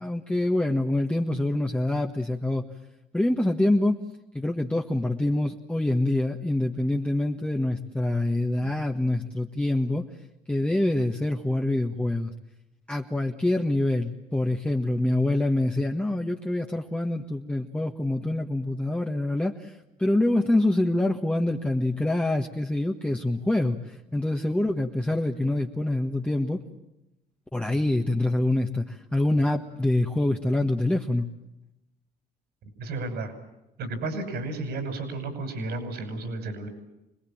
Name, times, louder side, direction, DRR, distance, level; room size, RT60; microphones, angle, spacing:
voice 1, 0.0-2.6 3.1-4.0 4.3-10.1 10.5-12.3 12.9-26.6 27.5-31.3, left 1 dB, 5° left, 1 dB, 1.6 m, -25 dB
voice 2, 32.8-33.3 33.8-36.7, right 2 dB, 75° right, 8 dB, 6.2 m, -32 dB
26.0 x 20.5 x 8.8 m, 0.92 s
cardioid pair, 110°, 17 cm